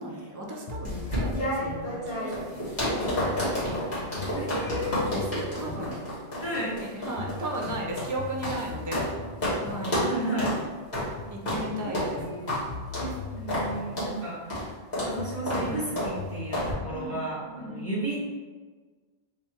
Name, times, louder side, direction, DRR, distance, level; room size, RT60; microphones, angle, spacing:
voice 1, 0.0-3.5 5.0-6.0 6.6-9.1 9.6-10.2 10.6-10.7 11.3-12.2 16.9-17.2 17.5-18.0, right 1 dB, 25° right, -1 dB, 0.5 m, -36 dB
sound 1, 0.7-2.8 3.2-6.9 7.2-10.8 11.2-14.9 15.2-16.8, left 4 dB, 75° left, 0.9 m, -41 dB
sound 2, 0.8-9.1 9.4-9.6 9.8-10.1 10.4-10.6 10.9-11.1 11.5-11.6 11.9-12.1 12.5-12.6 12.9-13.1 13.5-13.7 14.0-14.1 14.5-14.7 14.9-15.1 15.5-15.7 16.0-16.1 16.5-16.7, left 1 dB, 45° left, 1.5 m, -30 dB
voice 2, 4.3-5.1 6.4-6.7 10.0-10.6 11.8-12.5 13.0-14.7 15.0-18.3, right 1 dB, 15° left, -8 dB, 1.2 m, -33 dB
3.5 x 2.5 x 4.3 m, 1.4 s
omnidirectional pair, 1.1 m